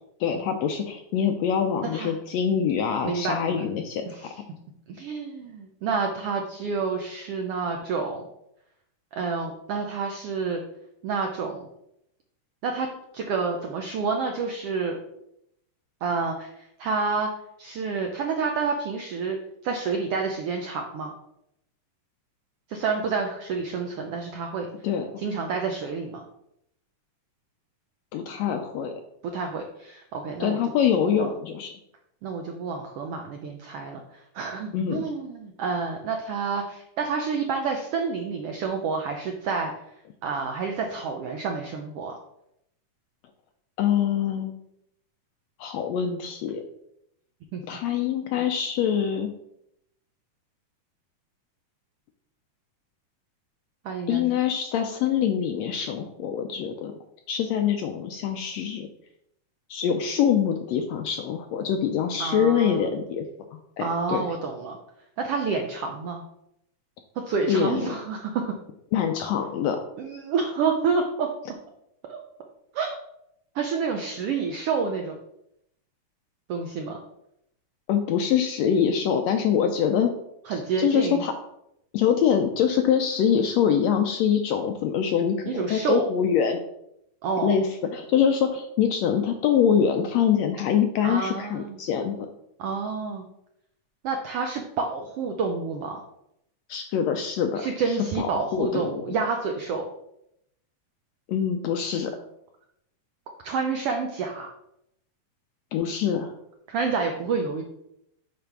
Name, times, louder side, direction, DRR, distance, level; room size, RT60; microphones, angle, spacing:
voice 1, 0.2-4.3 24.8-25.1 28.1-28.9 30.4-31.7 34.7-35.1 43.8-44.5 45.6-46.6 47.7-49.3 54.1-56.9 57.3-58.9 59.7-63.2 63.5-64.2 67.5-68.0 68.9-69.8 77.9-80.1 80.5-81.3 81.9-86.6 87.4-92.3 96.7-98.9 101.3-102.1 105.7-106.3, left 8 dB, 80° left, 5 dB, 1.5 m, -24 dB
voice 2, 1.8-2.1 3.0-3.6 4.1-4.3 4.9-8.2 9.1-10.6 11.0-11.7 12.6-12.9 13.1-15.0 16.0-17.3 17.6-19.4 19.6-21.1 22.7-24.7 25.2-26.2 29.3-30.6 31.0-31.3 32.2-39.7 40.2-42.2 47.5-47.8 48.4-48.5 53.8-54.3 62.2-62.8 63.8-64.8 65.2-66.2 67.3-68.6 70.0-71.3 72.1-72.2 72.7-72.9 73.5-75.2 76.5-77.0 80.5-81.2 85.4-86.1 87.2-87.6 91.0-91.8 92.6-93.3 94.0-96.0 97.6-99.9 103.4-104.5 106.7-107.6, right 5 dB, 80° right, 3 dB, 1.3 m, -29 dB
8.5 x 3.4 x 5.9 m, 0.79 s
omnidirectional pair, 3.6 m